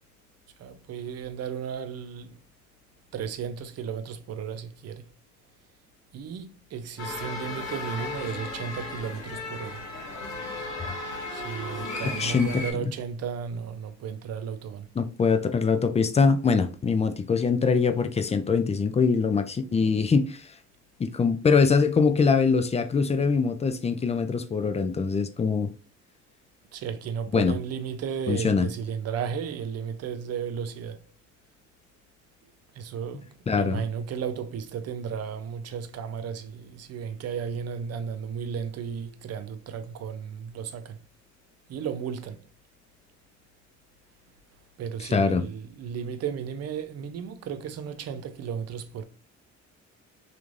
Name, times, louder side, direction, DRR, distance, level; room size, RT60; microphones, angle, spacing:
voice 1, 0.6-2.4 3.1-5.1 6.1-9.8 11.3-14.9 26.7-31.1 32.7-41.0 41.7-42.4 44.8-49.0, right 7 dB, 55° right, 0.5 m, -34 dB
sound 1, 7.0-12.7, left 2 dB, 65° left, 1.0 m, -35 dB
voice 2, 12.2-12.6 15.0-20.5 21.0-25.7 27.3-27.5 28.3-28.7 33.5-33.8 45.1-45.4, left 5 dB, 20° left, 0.3 m, -23 dB
3.0 x 2.5 x 2.4 m
cardioid pair, 90°, 30 cm